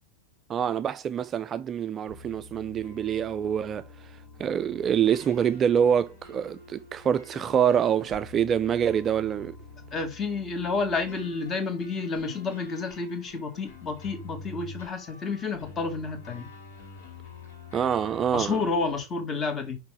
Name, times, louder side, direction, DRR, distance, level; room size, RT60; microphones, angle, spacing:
voice 1, 0.5-9.5 17.7-18.6, right 8 dB, 25° right, 0.3 m, -26 dB
sound 1, 2.1-19.0, left 3 dB, 55° left, 4.3 m, -47 dB
voice 2, 9.9-16.5 18.3-19.8, left 4 dB, 20° left, 2.0 m, -30 dB
6.0 x 4.8 x 3.5 m
figure-of-eight pair, 90°, 0 cm